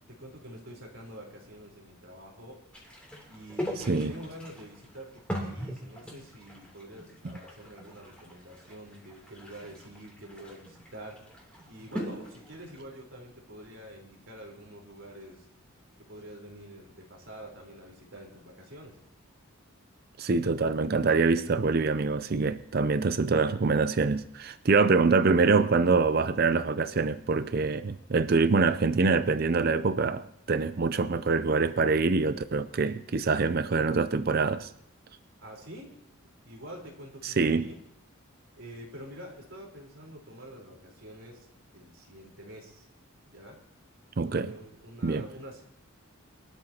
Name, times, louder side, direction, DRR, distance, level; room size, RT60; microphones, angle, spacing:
voice 1, 0.1-2.6 3.3-15.5 16.0-19.0 35.4-36.0 36.4-37.8 38.6-42.9 43.3-43.6 44.2-45.6, right 1 dB, 65° right, 4.1 m, -47 dB
sound 1, 2.7-12.8, equal, 5° left, 3.0 m, -41 dB
voice 2, 3.8-4.1 20.2-34.7 37.2-37.7 44.2-44.5 45.0-45.3, right 4 dB, 45° right, 0.5 m, -25 dB
23.0 x 13.0 x 2.9 m
head